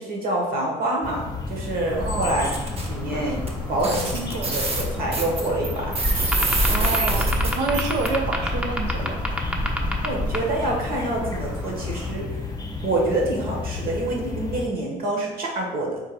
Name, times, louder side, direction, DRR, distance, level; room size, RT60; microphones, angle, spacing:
voice 1, 0.0-2.5 2.9-4.1 4.4-6.0 7.2-7.3 10.0-12.4 12.8-16.0, right 2 dB, 60° right, -1 dB, 1.5 m, -26 dB
sound 1, 1.0-14.7, left 4 dB, 25° left, 0.7 m, -32 dB
sound 2, 1.9-12.1, equal, 5° right, 0.6 m, -29 dB
voice 2, 2.0-2.6 3.7-4.5 6.7-9.2, right 3 dB, 85° right, 3 dB, 0.6 m, -29 dB
sound 3, 2.1-2.9 3.5-3.6 3.8-8.1, right 2 dB, 35° right, 0.9 m, -27 dB
4.6 x 2.4 x 4.7 m, 1.1 s
cardioid pair, 110°, 17 cm